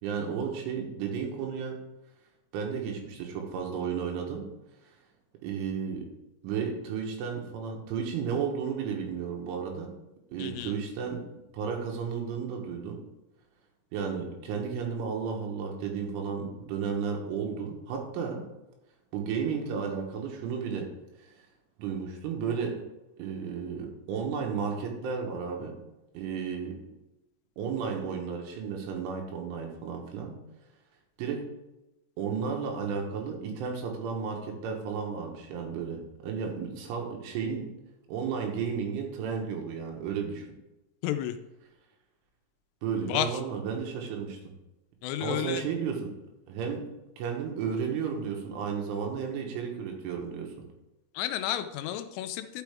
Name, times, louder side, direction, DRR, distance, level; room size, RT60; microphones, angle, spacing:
voice 1, 0.0-1.8 2.5-4.5 5.4-6.1 6.4-9.9 10.3-11.2 11.5-13.0 13.9-18.4 19.1-20.9 21.2-21.5 21.8-22.8 23.2-25.8 26.2-26.8 27.6-30.4 31.2-31.5 32.2-37.7 38.1-40.5 42.8-44.5 45.2-46.1 46.5-46.9 47.2-50.5, right 6 dB, 75° right, 1 dB, 3.6 m, -33 dB
voice 2, 10.4-10.8 41.0-41.4 43.0-43.4 45.0-45.7 51.1-52.6, left 12 dB, 85° left, 9 dB, 3.1 m, -32 dB
12.0 x 5.8 x 3.5 m, 0.96 s
omnidirectional pair, 5.8 m